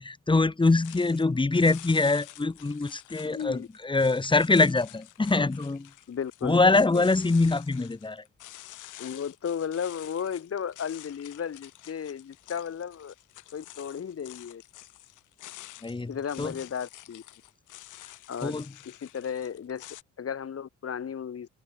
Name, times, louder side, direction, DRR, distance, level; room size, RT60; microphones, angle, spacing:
voice 1, 0.0-5.9 6.4-8.2 15.8-16.5 18.4-18.7, left 3 dB, 15° left, 1.5 m, -24 dB
sound 1, 0.6-20.0, left 15 dB, 90° left, 6.3 m, -49 dB
voice 2, 3.2-3.7 6.1-7.1 9.0-13.1 13.5-14.6 16.1-17.2 18.3-18.6 18.9-19.9 20.2-21.5, left 7 dB, 50° left, 5.9 m, -34 dB
open air
cardioid pair, 90°, 30 cm